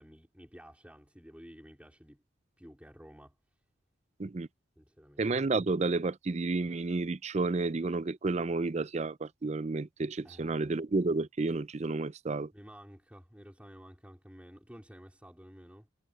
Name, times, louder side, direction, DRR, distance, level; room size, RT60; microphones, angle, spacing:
voice 1, 0.0-2.2 2.6-3.4 4.8-5.3 10.2-10.7 12.5-15.9, equal, 5° right, 3.9 m, -52 dB
voice 2, 5.2-12.5, right 3 dB, 30° right, 0.4 m, -31 dB
head